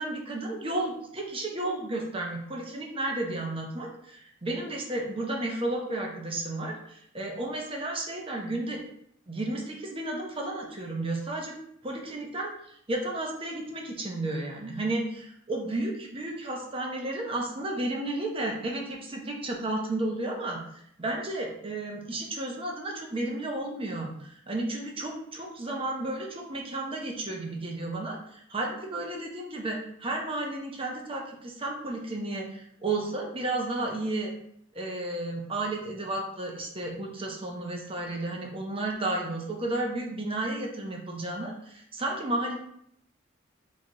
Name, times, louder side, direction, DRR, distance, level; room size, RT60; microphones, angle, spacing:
voice 1, 0.0-8.8 9.3-11.5 11.8-12.5 12.9-34.3 34.7-42.6, right 2 dB, 30° right, 0 dB, 0.8 m, -33 dB
3.9 x 3.2 x 3.8 m, 0.70 s
head